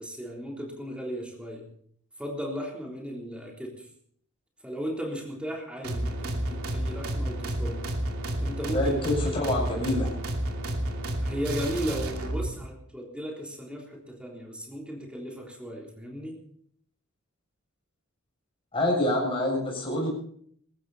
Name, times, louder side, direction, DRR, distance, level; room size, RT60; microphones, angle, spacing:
voice 1, 0.0-1.7 2.2-3.9 4.6-7.8 8.4-9.0 11.2-16.4, equal, 5° right, -1 dB, 3.6 m, -36 dB
sound 1, 5.8-12.5, right 1 dB, 85° right, 2.8 m, -31 dB
voice 2, 8.7-10.1 18.7-20.1, left 1 dB, 25° left, -2 dB, 7.2 m, -26 dB
21.0 x 15.0 x 4.2 m, 0.63 s
head